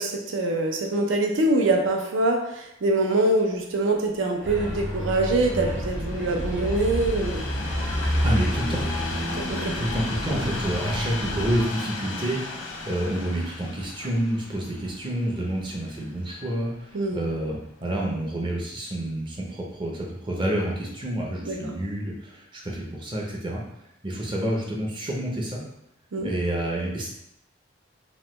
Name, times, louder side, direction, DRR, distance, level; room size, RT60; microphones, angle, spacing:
voice 1, 0.0-7.4 9.2-9.7 16.9-17.2 21.5-21.7 26.1-26.3, right 2 dB, 90° right, 2 dB, 0.5 m, -24 dB
Train, 3.7-16.9 17.6-17.8, left 2 dB, 85° left, 0.5 m, -36 dB
sound 1, 4.4-11.6, equal, 70° right, 0.9 m, -29 dB
voice 2, 8.2-8.8 9.7-12.4 12.9-23.6 24.0-25.6 26.2-27.1, right 1 dB, 25° right, -2 dB, 0.5 m, -28 dB
3.0 x 2.1 x 3.0 m, 0.82 s
head